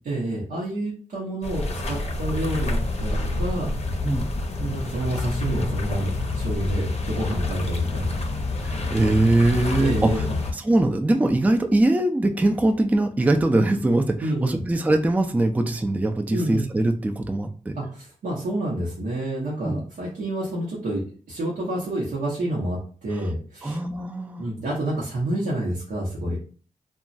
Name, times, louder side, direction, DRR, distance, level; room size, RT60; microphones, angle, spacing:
voice 1, 0.1-3.7 4.6-8.2 9.8-10.3 14.2-14.6 16.3-16.6 17.8-23.8 24.4-26.4, right 1 dB, 85° right, -6 dB, 0.8 m, -28 dB
sound 1, 1.4-10.5, left 2 dB, 55° left, 0.6 m, -27 dB
voice 2, 8.6-10.2 10.5-17.8 19.6-19.8 23.6-24.4, right 1 dB, 10° right, 5 dB, 0.4 m, -22 dB
2.9 x 2.3 x 2.6 m, 0.40 s
cardioid pair, 55°, 13 cm